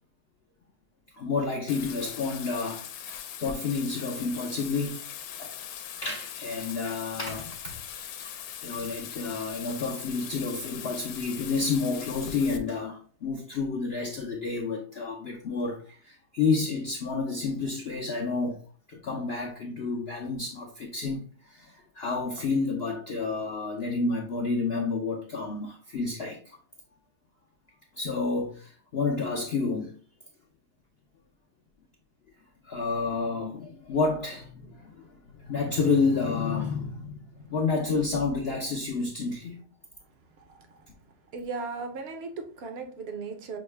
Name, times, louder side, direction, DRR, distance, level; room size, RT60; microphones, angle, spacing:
voice 1, 1.2-5.0 5.4-5.5 6.0-7.8 8.2-8.3 8.6-18.6 18.9-26.6 28.0-30.0 32.6-39.6, left 4 dB, 70° left, 0.6 m, -30 dB
Bathtub (filling or washing), 1.7-12.6, left 9 dB, 85° left, 1.2 m, -40 dB
voice 2, 40.4-40.9 41.3-43.6, right 4 dB, 55° right, 0.7 m, -37 dB
6.3 x 2.1 x 3.2 m
omnidirectional pair, 1.8 m